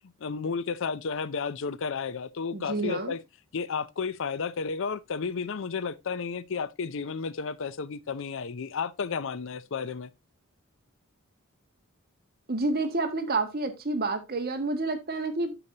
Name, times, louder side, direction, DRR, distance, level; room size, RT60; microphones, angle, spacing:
voice 1, 0.2-3.2 3.5-10.1, left 5 dB, 65° left, 0.5 m, -32 dB
voice 2, 2.5-3.1 12.5-15.5, right 2 dB, 45° right, 1.7 m, -29 dB
9.7 x 6.9 x 2.8 m
head